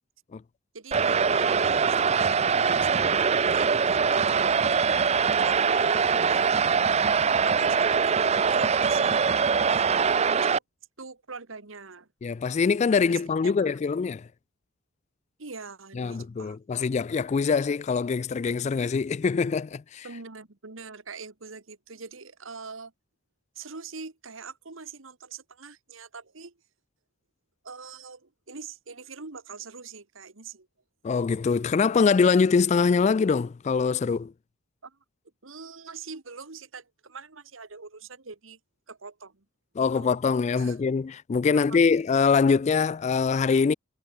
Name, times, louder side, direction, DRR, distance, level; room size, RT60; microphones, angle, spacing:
voice 1, 0.7-3.2 3.5-4.6 5.4-9.8 10.1-10.6 11.0-12.1 13.1-13.7 15.4-16.6 20.0-22.9 23.5-26.5 27.6-30.7 34.8-35.0 35.4-38.6 38.9-39.4 39.9-40.2 40.6-40.8 41.5-41.8, right 4 dB, 80° right, 1.7 m, -43 dB
sound 1, 0.9-10.6, right 6 dB, 35° right, 0.5 m, -23 dB
voice 2, 12.2-14.2 16.0-20.1 31.0-34.3 39.8-43.7, left 5 dB, 35° left, 0.3 m, -23 dB
head